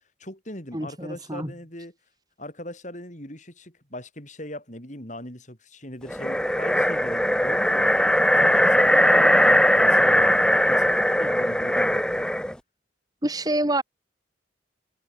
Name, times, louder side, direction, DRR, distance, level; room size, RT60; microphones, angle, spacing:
voice 1, 0.2-2.0 2.4-8.1 8.4-12.3, left 1 dB, 40° left, 7.4 m, -40 dB
voice 2, 0.7-1.5 13.2-13.8, right 1 dB, 20° right, 2.5 m, -26 dB
sound 1, 6.1-12.5, left 1 dB, 5° left, 1.2 m, -20 dB
head